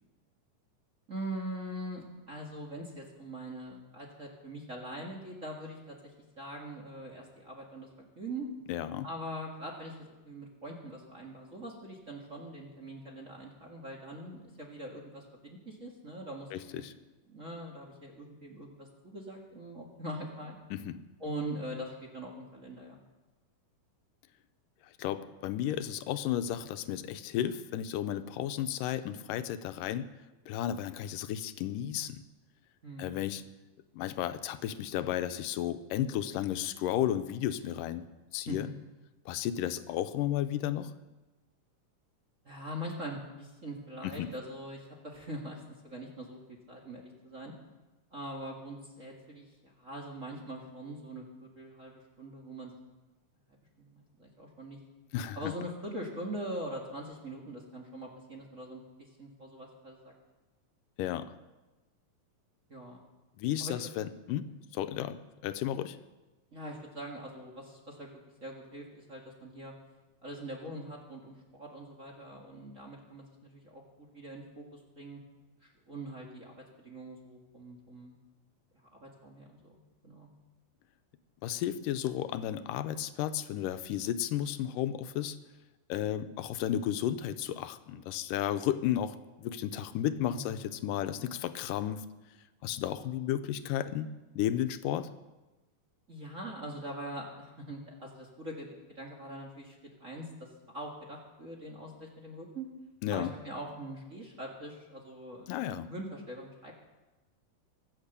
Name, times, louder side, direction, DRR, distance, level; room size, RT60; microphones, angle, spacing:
voice 1, 1.1-7.9 8.2-8.5 9.0-16.8 17.3-20.6 21.2-23.0 32.8-33.3 38.5-38.6 42.4-46.4 46.7-47.5 48.1-52.7 53.8-54.8 55.3-60.1 62.7-63.0 63.6-63.8 66.5-68.1 68.4-69.7 70.2-75.2 75.6-78.1 78.7-79.8 80.0-80.3 90.3-90.6 96.1-102.7 103.1-106.9, right 1 dB, 30° right, 0 dB, 1.7 m, -43 dB
voice 2, 8.7-9.1 16.5-16.9 20.7-21.0 24.8-30.1 30.5-32.2 33.0-33.4 33.9-38.1 38.3-38.7 39.3-40.9 44.0-44.3 55.1-55.5 61.0-61.3 63.4-66.0 81.4-85.4 85.9-92.0 92.6-95.1 103.0-103.3 105.5-105.9, left 11 dB, 85° left, 11 dB, 2.3 m, -33 dB
23.5 x 8.1 x 6.8 m, 1.1 s
omnidirectional pair, 3.8 m